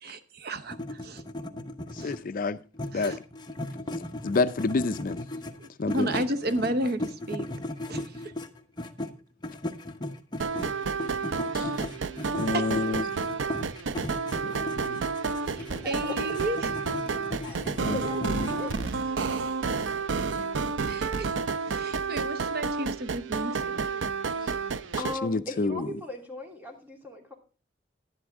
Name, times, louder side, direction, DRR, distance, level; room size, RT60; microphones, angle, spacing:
voice 1, 0.0-1.2 1.9-2.1 2.9-3.2 5.6-7.4 7.9-8.3 12.5-12.7 15.4-17.1 20.9-23.9, right 1 dB, 60° right, 0.8 m, -33 dB
sound 1, 0.7-2.4 2.7-9.1 9.4-18.8, left 1 dB, 25° left, 1.0 m, -37 dB
voice 2, 2.0-2.6 2.9-3.1 4.2-5.2 5.8-6.2 11.5-11.7 12.4-13.1 14.3-15.1 17.8-18.6 25.0-25.9, left 3 dB, 50° left, 0.5 m, -29 dB
sound 2, 10.4-25.2, right 5 dB, 85° right, 0.6 m, -30 dB
voice 3, 15.7-16.1 17.4-18.9 25.0-27.3, left 1 dB, 10° right, 2.8 m, -38 dB
11.5 x 11.0 x 3.5 m
head